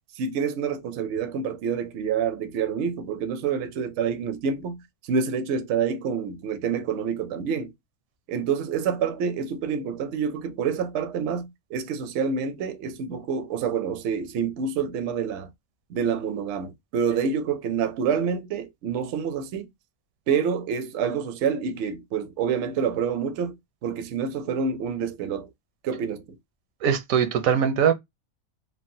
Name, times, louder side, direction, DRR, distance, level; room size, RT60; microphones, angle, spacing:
voice 1, 0.2-4.8 5.1-7.7 8.3-15.5 15.9-19.7 20.3-23.6 23.8-25.5 25.8-26.4, right 6 dB, 65° right, 0.7 m, -27 dB
voice 2, 26.8-27.9, right 8 dB, 80° right, 1.1 m, -21 dB
3.2 x 2.2 x 2.6 m
omnidirectional pair, 1.5 m